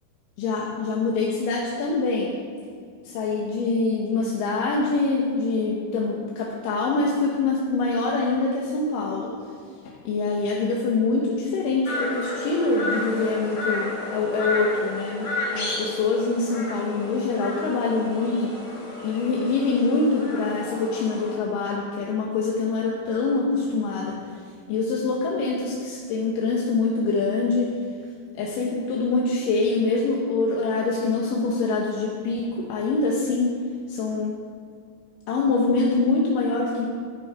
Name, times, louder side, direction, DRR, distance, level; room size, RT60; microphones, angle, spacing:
voice 1, 0.4-2.3 3.0-9.4 10.0-18.5 19.0-24.1 24.7-27.8 28.4-33.6 33.9-34.4 35.3-36.9, left 3 dB, 65° left, -3 dB, 2.4 m, -24 dB
sound 1, 11.9-21.3, left 2 dB, 35° left, 1.9 m, -32 dB
11.5 x 10.0 x 4.9 m, 2.2 s
omnidirectional pair, 4.7 m